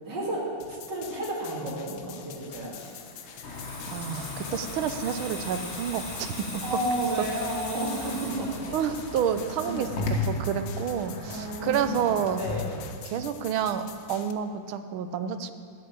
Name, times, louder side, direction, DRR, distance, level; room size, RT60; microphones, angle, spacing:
voice 1, 0.0-2.7 6.6-8.5 9.6-9.9 11.2-11.9 12.3-12.7, right 1 dB, 60° right, -4 dB, 3.2 m, -31 dB
sound 1, 0.6-14.3, left 9 dB, 90° left, 1.6 m, -46 dB
Water tap faucet / Sink (filling or washing), 2.4-11.7 12.0-12.2, left 1 dB, 55° left, 4.4 m, -42 dB
sound 2, 3.4-12.9, left 2 dB, 35° left, 1.4 m, -37 dB
voice 2, 3.9-6.6 7.2-7.3 8.7-12.4 13.0-13.8 14.1-15.5, right 8 dB, 85° right, 10 dB, 1.6 m, -29 dB
10.5 x 8.9 x 8.7 m, 2.1 s
omnidirectional pair, 2.2 m